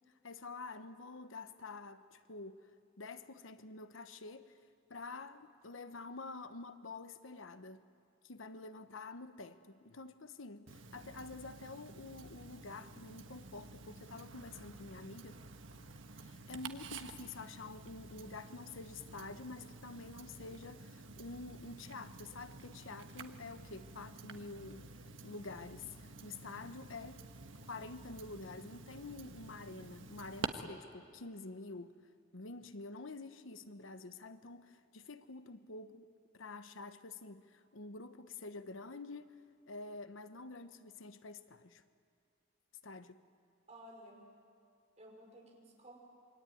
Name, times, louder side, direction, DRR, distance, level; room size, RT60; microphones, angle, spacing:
voice 1, 0.2-2.7 3.0-4.6 4.9-7.9 8.2-15.4 16.2-27.3 27.7-32.0 32.3-41.8 42.8-43.2, left 3 dB, 85° left, 1.1 m, -48 dB
Tick-tock, 10.7-30.5, right 3 dB, 80° right, 1.4 m, -50 dB
voice 2, 43.7-44.3 45.0-46.0, right 1 dB, 35° right, 5.3 m, -55 dB
27.5 x 23.5 x 9.3 m
head